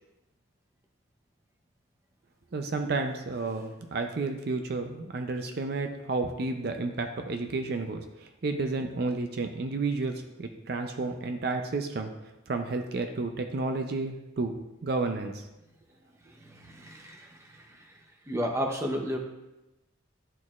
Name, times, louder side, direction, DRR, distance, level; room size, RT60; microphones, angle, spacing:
voice 1, 2.5-12.1 12.5-14.5 14.8-15.4, right 3 dB, 50° right, 5 dB, 0.5 m, -31 dB
voice 2, 16.2-19.2, equal, 15° right, 2 dB, 0.6 m, -34 dB
11.0 x 4.2 x 2.4 m, 0.96 s
head